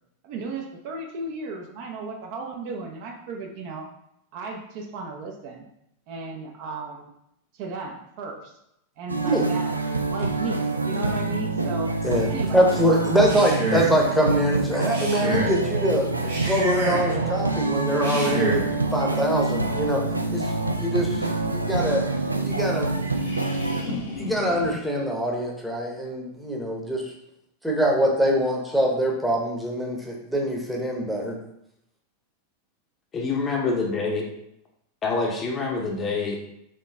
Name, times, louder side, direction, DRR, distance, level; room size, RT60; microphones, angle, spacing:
voice 1, 0.2-3.9 4.3-5.7 6.1-7.1 7.5-8.6 9.0-9.8 10.1-11.9 12.3-13.1, right 3 dB, 45° right, 2 dB, 0.7 m, -35 dB
sound 1, 9.1-23.8, right 2 dB, 85° right, 0.3 m, -26 dB
voice 2, 12.0-16.1 16.4-18.6 18.9-20.0 20.3-22.1 22.4-23.1 24.2-27.1 27.6-31.4, equal, ahead, -1 dB, 0.9 m, -24 dB
Male speech man speaking, 13.1-14.0 14.8-15.6 16.2-17.2 17.9-18.7, equal, 65° right, 1.1 m, -28 dB
sound 2, 17.9-24.7, left 2 dB, 60° left, 0.9 m, -38 dB
voice 3, 33.1-34.2 35.0-36.4, left 4 dB, 25° left, 0 dB, 0.8 m, -26 dB
4.4 x 3.0 x 3.5 m, 0.78 s
figure-of-eight pair, 90°, 0 cm